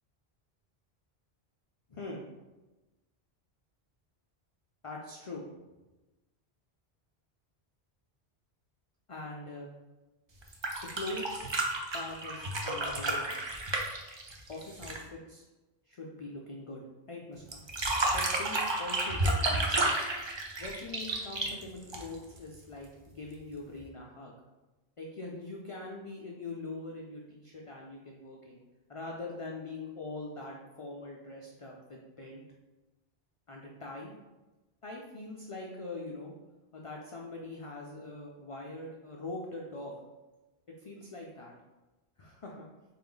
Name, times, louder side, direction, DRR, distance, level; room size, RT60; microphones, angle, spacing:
voice 1, 1.9-2.2 4.8-5.4 9.1-9.7 10.9-11.5 11.9-13.4 14.5-15.4 15.9-17.6 18.1-20.1 20.6-24.4 25.0-28.6 28.9-32.4 33.5-34.1 34.8-36.3 36.7-40.0 40.8-41.5 42.2-42.7, left 2 dB, 55° left, -2 dB, 0.3 m, -43 dB
sound 1, 10.4-15.1 17.5-22.4 23.8-23.9, right 2 dB, 45° right, 0.4 m, -31 dB
3.8 x 2.5 x 3.8 m, 1.1 s
omnidirectional pair, 1.1 m